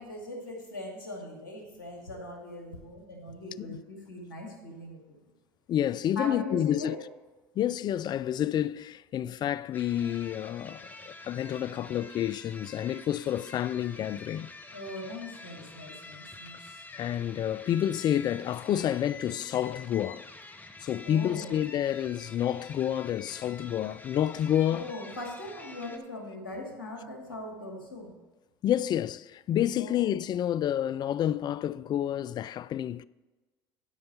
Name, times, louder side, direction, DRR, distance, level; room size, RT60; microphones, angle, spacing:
voice 1, 0.0-5.2 6.2-7.0 14.7-16.8 21.0-21.6 24.7-28.2 29.8-30.1, left 2 dB, 90° left, 2.2 m, -40 dB
voice 2, 5.7-7.0 7.6-14.5 16.9-20.3 20.8-24.9 28.6-33.0, left 11 dB, 40° left, 0.3 m, -29 dB
sound 1, 9.7-26.0, left 2 dB, 15° left, 1.2 m, -48 dB
12.0 x 5.4 x 5.5 m
hypercardioid pair, 70°, 11 cm